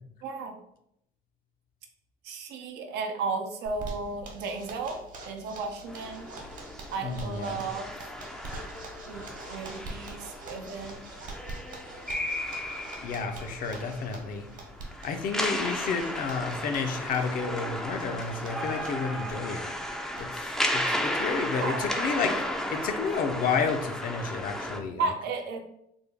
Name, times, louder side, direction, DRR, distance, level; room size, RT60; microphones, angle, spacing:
voice 1, 0.2-0.6 2.2-6.3 6.9-7.9 9.1-11.0 21.3-21.9 22.8-22.9 25.0-25.6, right 4 dB, 85° right, 4 dB, 0.6 m, -34 dB
Zipper (clothing), 3.7-21.8 22.2-22.3 22.6-22.7 23.0-23.4, right 2 dB, 50° right, 1.0 m, -45 dB
sound 1, 5.9-24.8, left 1 dB, 5° left, 0.3 m, -34 dB
voice 2, 7.0-7.6 13.0-14.5 15.0-19.7 20.2-22.4 22.7-25.1, left 5 dB, 55° left, 6 dB, 0.5 m, -31 dB
3.5 x 2.1 x 3.4 m, 0.77 s
cardioid pair, 110°, 17 cm